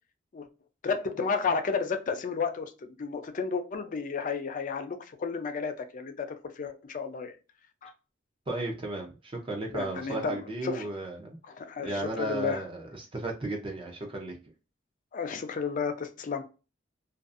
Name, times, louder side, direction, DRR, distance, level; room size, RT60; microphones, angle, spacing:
voice 1, 0.8-7.4 7.8-7.9 9.7-10.9 11.5-12.6 15.1-16.4, left 5 dB, 40° left, 0.4 m, -32 dB
voice 2, 8.5-11.4 11.8-14.4, right 2 dB, 30° right, 0.5 m, -34 dB
2.6 x 2.3 x 2.4 m
head